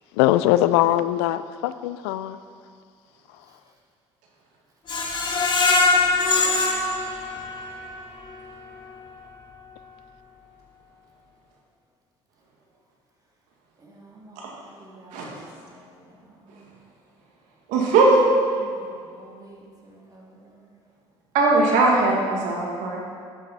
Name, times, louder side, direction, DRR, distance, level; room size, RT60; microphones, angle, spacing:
voice 1, 0.2-2.4, left 14 dB, 85° left, 13 dB, 0.4 m, -21 dB
Screech, 4.9-7.9 8.3-8.4 8.8-8.9, left 3 dB, 35° left, 1.6 m, -22 dB
voice 2, 13.8-15.3 15.6-16.7 18.5-20.7, right 2 dB, 30° right, -3 dB, 2.6 m, -50 dB
voice 3, 17.7-18.2 21.3-23.0, right 3 dB, 75° right, -2 dB, 2.0 m, -19 dB
10.5 x 8.5 x 4.2 m, 2.2 s
supercardioid pair, 70°, 13 cm